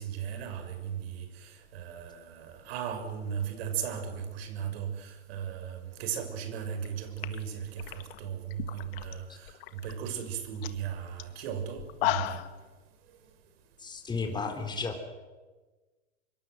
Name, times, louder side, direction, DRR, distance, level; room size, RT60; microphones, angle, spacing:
voice 1, 0.0-12.4, right 8 dB, 60° right, 8 dB, 5.8 m, -37 dB
sound 1, 6.7-6.9 7.2-9.1 9.5-9.9 10.3-10.4 10.6-10.8 11.2-11.3 11.8-12.6, left 16 dB, 55° left, 1.9 m, -34 dB
voice 2, 13.8-15.0, left 4 dB, 10° left, 5 dB, 4.0 m, -33 dB
26.0 x 23.5 x 7.9 m, 1.3 s
hypercardioid pair, 120°, 35 cm